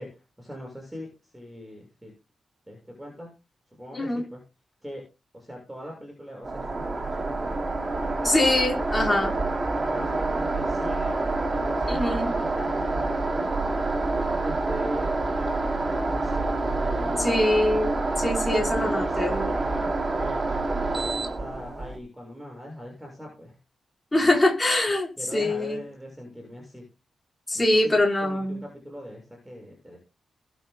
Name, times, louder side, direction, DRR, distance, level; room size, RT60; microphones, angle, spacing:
voice 1, 0.0-2.1 2.7-3.3 3.8-4.4 4.8-5.0 5.3-8.5 8.9-9.5 9.7-11.2 11.5-13.7 14.4-15.1 15.3-17.5 18.4-19.9 20.2-23.5 24.1-24.3 25.2-26.8 27.5-30.0, equal, 5° right, 0 dB, 6.8 m, -41 dB
voice 2, 3.9-4.3 8.2-9.3 11.9-12.3 17.1-19.5 24.1-25.8 27.5-28.6, left 1 dB, 15° left, -1 dB, 4.6 m, -24 dB
sound 1, 6.4-22.0, right 2 dB, 30° right, 3.2 m, -27 dB
22.5 x 9.5 x 2.3 m, 0.29 s
wide cardioid pair, 150°, 0 cm